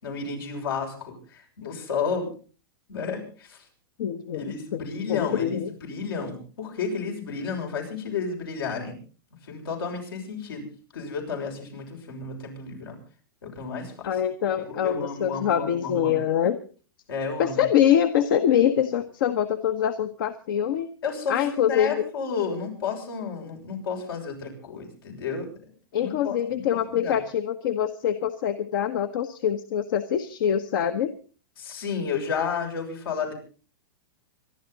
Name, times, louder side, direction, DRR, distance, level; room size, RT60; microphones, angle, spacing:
voice 1, 0.0-2.3 2.9-3.6 4.3-9.0 9.4-10.7 10.9-13.0 13.4-14.1 14.5-16.2 17.1-17.6 21.0-25.7 26.0-27.2 31.6-33.3, left 5 dB, 85° left, 2 dB, 6.7 m, -32 dB
voice 2, 4.0-4.8 5.1-5.7 14.0-16.6 17.4-20.9 21.3-22.0 25.9-31.1, left 9 dB, 65° left, 10 dB, 1.2 m, -24 dB
26.0 x 11.5 x 4.0 m, 0.38 s
hypercardioid pair, 140°, 12 cm